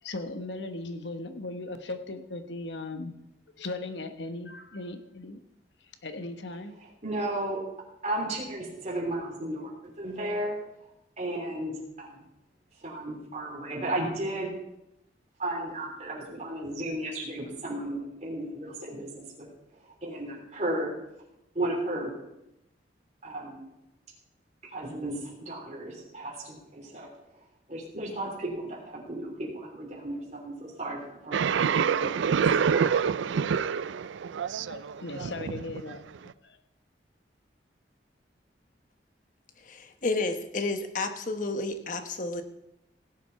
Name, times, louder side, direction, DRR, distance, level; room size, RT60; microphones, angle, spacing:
voice 1, 0.0-3.2 3.6-5.4 5.8-6.8 34.6-36.6, left 2 dB, 75° left, 8 dB, 1.1 m, -38 dB
voice 2, 7.0-7.6 8.0-10.6 11.2-12.2 12.8-14.5 15.4-19.5 19.8-20.9 21.5-22.1 23.2-23.6 24.6-27.1 27.7-32.4 32.7-33.0, right 1 dB, 40° right, -3 dB, 3.2 m, -34 dB
sound 1, 31.3-36.3, right 6 dB, 90° right, 0.4 m, -27 dB
voice 3, 39.6-42.4, left 3 dB, 45° left, 7 dB, 1.2 m, -31 dB
16.5 x 7.4 x 5.7 m, 0.87 s
head